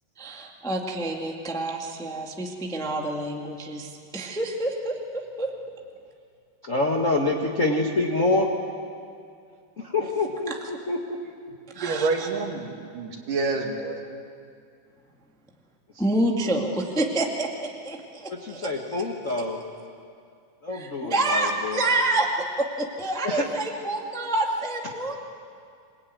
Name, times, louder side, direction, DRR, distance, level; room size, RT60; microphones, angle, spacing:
voice 1, 0.2-5.5 10.5-10.6 11.7-12.3 16.0-18.7 19.2-19.3 20.7-25.2, right 2 dB, ahead, 1 dB, 1.1 m, -28 dB
voice 2, 6.6-8.5 9.8-11.2 18.3-19.6 20.6-21.9 23.2-23.4, left 2 dB, 40° left, 1 dB, 1.0 m, -26 dB
voice 3, 11.8-14.0, right 3 dB, 70° right, 2 dB, 4.0 m, -28 dB
27.5 x 20.0 x 9.4 m, 2.3 s
omnidirectional pair, 4.0 m